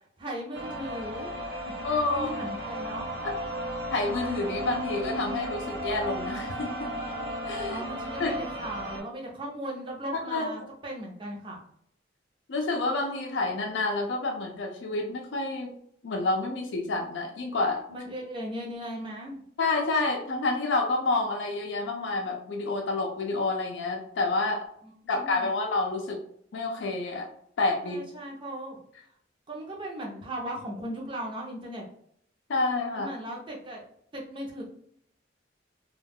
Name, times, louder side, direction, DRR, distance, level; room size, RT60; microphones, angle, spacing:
voice 1, 0.2-1.3 1.6-3.1 7.7-11.6 17.9-19.4 24.8-25.5 27.8-28.8 29.5-31.8 32.9-33.8 34.1-34.6, right 1 dB, 25° right, -2 dB, 0.7 m, -37 dB
sound 1, 0.5-9.0, equal, 60° right, 0.7 m, -35 dB
voice 2, 1.8-2.3 3.2-3.4 3.9-6.9 7.5-7.8 8.2-8.3 10.2-10.5 12.5-15.7 16.0-17.8 19.6-24.6 25.1-26.2 26.5-27.3 27.6-28.0 32.5-33.1, left 3 dB, 75° left, 1 dB, 0.4 m, -28 dB
2.3 x 2.3 x 3.4 m, 0.68 s
head